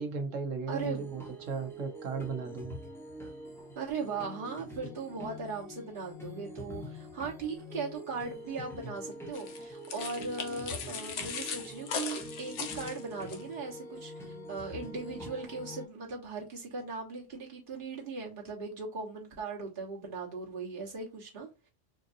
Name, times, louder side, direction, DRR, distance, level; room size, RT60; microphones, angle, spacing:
voice 1, 0.0-2.8, right 4 dB, 85° right, 1.3 m, -36 dB
voice 2, 0.7-1.0 3.7-21.7, right 4 dB, 45° right, 1.5 m, -38 dB
sound 1, 0.8-15.9, equal, 5° left, 0.7 m, -45 dB
sound 2, 9.3-13.4, left 6 dB, 70° left, 1.0 m, -39 dB
4.4 x 2.6 x 2.6 m
omnidirectional pair, 1.3 m